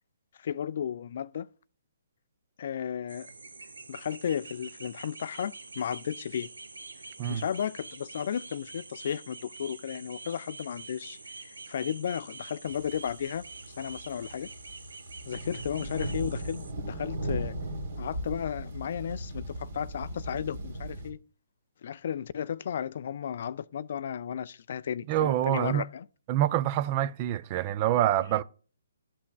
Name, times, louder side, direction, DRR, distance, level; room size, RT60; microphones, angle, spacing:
voice 1, 0.4-1.5 2.6-3.3 3.9-6.5 7.3-13.4 13.8-14.5 15.3-17.5 18.0-21.2 21.8-26.1 28.3-28.4, left 8 dB, 55° left, 0.3 m, -34 dB
sound 1, 3.1-16.7, right 3 dB, 80° right, 0.9 m, -46 dB
sound 2, 12.6-21.1, right 1 dB, 60° right, 2.1 m, -37 dB
voice 2, 25.1-25.8 26.3-28.4, right 12 dB, 30° right, 0.4 m, -26 dB
13.0 x 5.9 x 2.3 m
figure-of-eight pair, 135°, 0 cm